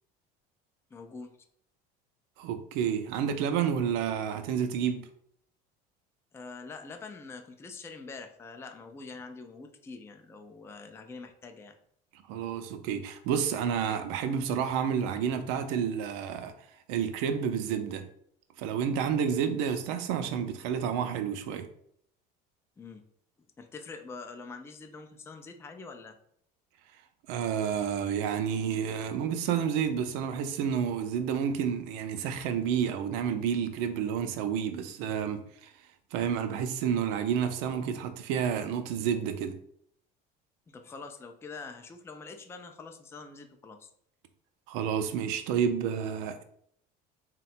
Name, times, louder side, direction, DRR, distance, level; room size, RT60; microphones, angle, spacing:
voice 1, 0.9-1.3 6.3-11.8 22.8-23.0 23.6-26.2 40.7-43.9, left 4 dB, 15° left, 0.3 m, -45 dB
voice 2, 2.4-5.1 12.3-16.5 16.9-18.0 18.6-21.7 27.3-35.7 36.1-39.5 44.7-46.4, right 8 dB, 85° right, 0.5 m, -30 dB
3.7 x 2.2 x 4.2 m
cardioid pair, 125°, 19 cm